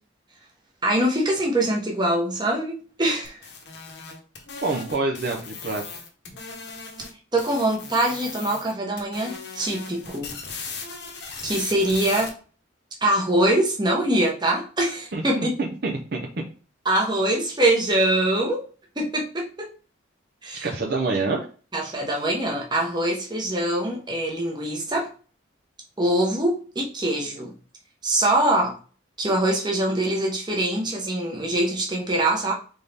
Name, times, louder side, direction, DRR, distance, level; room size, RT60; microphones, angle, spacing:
voice 1, 0.8-3.4 7.3-10.4 11.4-12.3 13.0-15.6 16.8-18.6 19.0-19.7 20.4-20.7 21.7-25.1 26.0-27.5 28.0-28.7 29.2-32.5, right 1 dB, 20° right, -1 dB, 1.0 m, -23 dB
sound 1, 3.2-7.1 7.4-8.7 9.0-12.3, left 5 dB, 60° left, 0.9 m, -38 dB
voice 2, 4.6-5.8 15.1-16.3 20.6-21.5, right 3 dB, 55° right, -1 dB, 0.7 m, -26 dB
4.0 x 3.7 x 3.4 m, 0.38 s
head